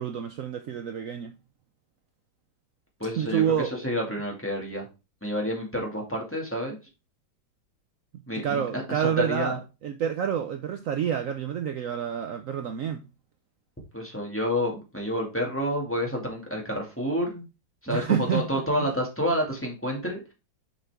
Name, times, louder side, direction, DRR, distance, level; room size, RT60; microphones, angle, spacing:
voice 1, 0.0-1.3 3.2-3.7 8.3-9.5 9.8-13.0 17.9-18.9, right 8 dB, 75° right, 0.7 m, -28 dB
voice 2, 3.0-4.9 5.2-6.8 8.3-9.6 13.9-17.5 17.8-20.2, equal, 5° left, 2.0 m, -29 dB
7.0 x 5.7 x 3.5 m
omnidirectional pair, 2.1 m